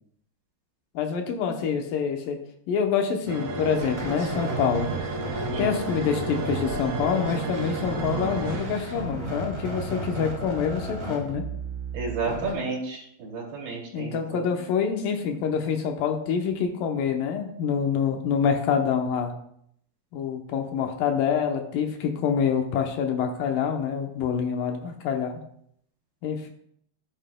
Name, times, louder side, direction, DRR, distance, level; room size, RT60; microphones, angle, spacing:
voice 1, 1.0-2.4 2.7-4.9 5.6-11.4 13.9-19.3 20.1-25.4 26.2-26.5, left 7 dB, 75° left, 4 dB, 2.3 m, -26 dB
sound 1, 3.3-9.3, right 3 dB, 60° right, 2.1 m, -33 dB
sound 2, 3.8-12.5, right 2 dB, 15° right, 2.4 m, -34 dB
voice 2, 5.5-5.8 11.9-14.5, right 4 dB, 80° right, -5 dB, 4.6 m, -32 dB
12.5 x 8.9 x 2.2 m, 0.69 s
omnidirectional pair, 4.5 m